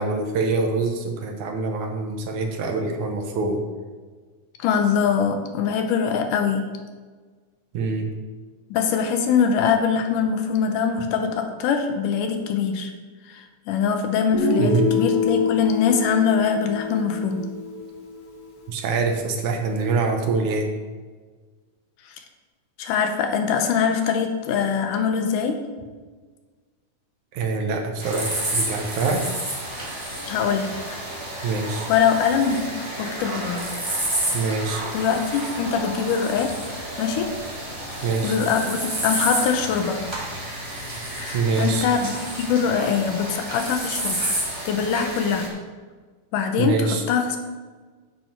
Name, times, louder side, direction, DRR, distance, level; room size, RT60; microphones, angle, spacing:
voice 1, 0.0-3.6 7.7-8.1 14.6-15.0 18.7-20.7 27.3-29.2 31.4-31.9 34.3-34.8 38.0-38.4 41.3-41.9 46.6-47.0, right 4 dB, 70° right, 3 dB, 2.4 m, -24 dB
voice 2, 4.6-6.7 8.7-12.9 13.3-17.4 22.1-22.2 22.8-25.6 30.3-31.1 31.9-32.7 33.0-33.6 34.3-34.4 34.9-37.3 38.2-40.0 41.1-44.3 44.7-45.5 46.3-47.4, left 6 dB, 85° left, 5 dB, 2.5 m, -23 dB
Guitar, 14.3-18.3, left 4 dB, 50° left, 1.9 m, -25 dB
sound 1, 28.0-45.5, right 1 dB, 10° right, 1.4 m, -30 dB
9.8 x 7.6 x 4.5 m, 1.4 s
omnidirectional pair, 3.7 m